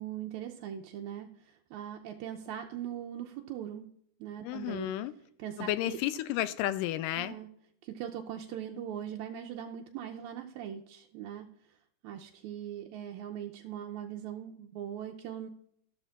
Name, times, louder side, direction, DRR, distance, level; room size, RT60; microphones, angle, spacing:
voice 1, 0.0-3.9 4.2-4.9 5.4-6.0 7.2-7.5 7.8-11.5 12.0-15.5, right 10 dB, 75° right, 1.8 m, -40 dB
voice 2, 4.4-5.1 5.6-7.4, left 14 dB, 85° left, 2.2 m, -32 dB
13.0 x 12.0 x 2.4 m
omnidirectional pair, 3.7 m